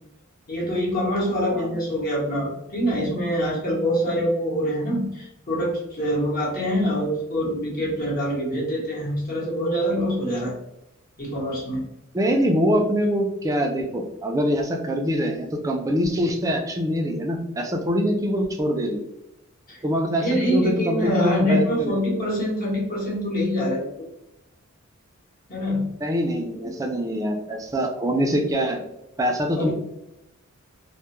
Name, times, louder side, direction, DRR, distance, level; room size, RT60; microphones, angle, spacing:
voice 1, 0.5-10.6 11.2-11.8 19.7-19.8 20.2-24.1 25.5-25.9 26.6-26.7 29.5-29.7, equal, 45° left, -5 dB, 0.8 m, -25 dB
voice 2, 12.1-19.0 19.8-22.0 26.0-28.8 29.2-29.7, equal, 15° right, 2 dB, 0.3 m, -24 dB
2.2 x 2.1 x 2.9 m, 0.86 s
head